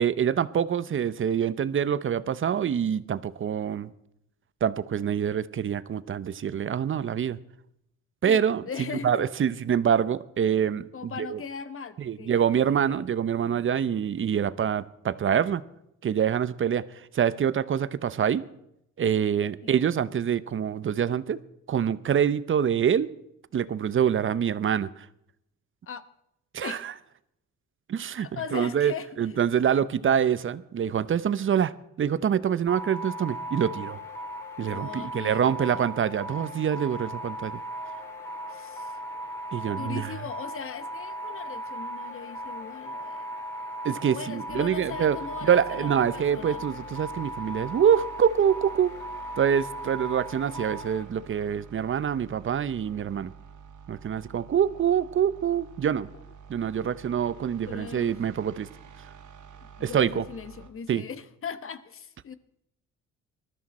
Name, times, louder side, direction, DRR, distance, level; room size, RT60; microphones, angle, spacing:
voice 1, 0.0-3.9 4.6-7.4 8.2-8.6 9.0-11.4 12.0-15.6 16.0-16.8 17.1-18.4 19.0-21.4 21.7-23.1 23.5-25.1 26.5-26.9 27.9-28.9 29.2-31.7 32.0-34.0 34.6-37.6 39.5-40.1 43.8-45.2 45.4-48.9 49.4-53.3 53.9-56.1 56.5-58.7 59.8-60.2 60.9-61.0, right 8 dB, 40° right, 16 dB, 0.7 m, -25 dB
voice 2, 8.2-9.2 10.9-13.1 19.6-19.7 25.9-26.1 26.6-26.8 28.2-29.4 34.7-35.8 38.5-39.0 39.7-43.3 44.0-46.6 55.9-56.2 57.6-58.2 59.6-62.3, left 6 dB, 45° left, 13 dB, 1.1 m, -39 dB
sound 1, 32.7-51.0, equal, 10° left, 3.9 m, -37 dB
sound 2, 44.5-60.7, right 7 dB, 80° right, 1.8 m, -49 dB
20.0 x 13.0 x 4.2 m, 0.80 s
cardioid pair, 90°, 30 cm